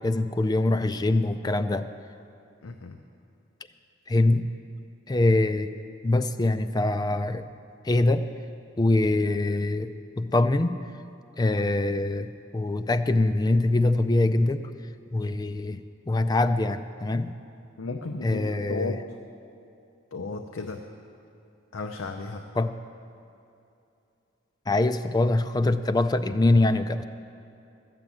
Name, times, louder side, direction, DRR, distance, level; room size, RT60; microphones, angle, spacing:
voice 1, 0.0-1.9 4.1-4.5 5.1-5.7 6.0-7.5 7.8-8.3 8.8-10.8 11.4-14.7 15.1-15.8 16.1-17.3 18.2-19.0 22.6-22.8 24.7-27.0, left 2 dB, 20° left, 11 dB, 0.3 m, -24 dB
voice 2, 2.6-3.0 17.8-19.0 20.1-20.8 21.7-22.4, left 3 dB, 85° left, 4 dB, 0.6 m, -34 dB
13.5 x 7.5 x 8.5 m, 2.7 s
head